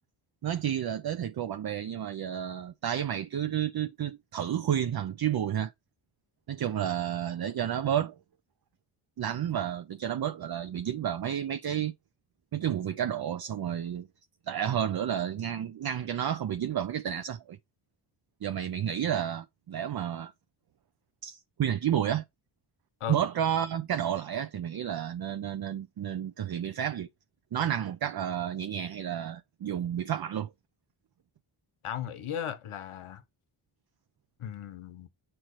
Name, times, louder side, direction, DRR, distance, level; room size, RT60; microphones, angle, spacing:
voice 1, 0.4-5.7 6.5-8.1 9.2-11.9 12.5-14.1 14.5-17.6 18.4-20.3 21.2-22.2 23.1-27.1 27.5-30.5, right 10 dB, 50° right, 0.6 m, -31 dB
voice 2, 31.8-33.2 34.4-35.1, left 9 dB, 80° left, 1.1 m, -36 dB
7.5 x 4.5 x 3.0 m
cardioid pair, 75°, 49 cm